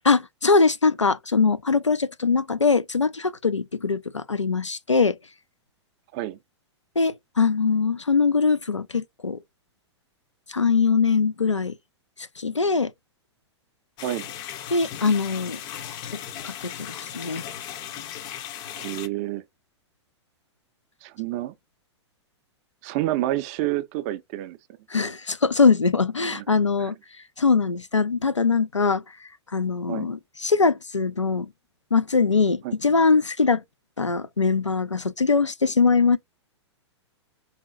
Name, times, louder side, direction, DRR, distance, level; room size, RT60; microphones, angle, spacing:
voice 1, 0.0-5.2 7.0-9.4 10.5-11.8 12.4-12.9 14.7-15.6 16.4-17.4 24.9-27.0 27.4-29.0 29.5-31.5 31.9-33.6 34.0-36.2, left 4 dB, 90° left, 0.4 m, -22 dB
sound 1, 14.0-19.1, left 10 dB, 25° left, 0.5 m, -37 dB
voice 2, 18.8-19.4 21.0-21.5 22.8-24.6 26.3-26.4 26.8-26.9 29.9-30.1 32.6-32.8, right 14 dB, 30° right, 0.4 m, -29 dB
4.2 x 3.6 x 2.4 m
figure-of-eight pair, 105°, 15 cm